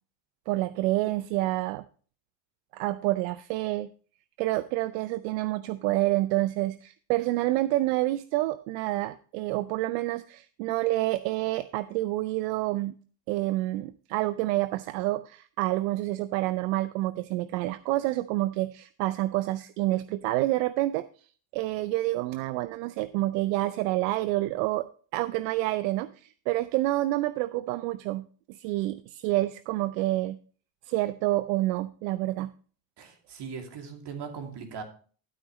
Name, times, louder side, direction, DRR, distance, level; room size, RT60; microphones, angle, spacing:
voice 1, 0.5-1.8 2.7-3.9 4.4-12.9 13.3-21.0 21.5-24.9 25.1-30.4 30.9-32.5, right 17 dB, 80° right, 15 dB, 0.6 m, -28 dB
voice 2, 33.0-34.8, right 6 dB, 55° right, 4 dB, 2.6 m, -39 dB
12.0 x 8.8 x 3.0 m, 0.41 s
hypercardioid pair, 70°, 49 cm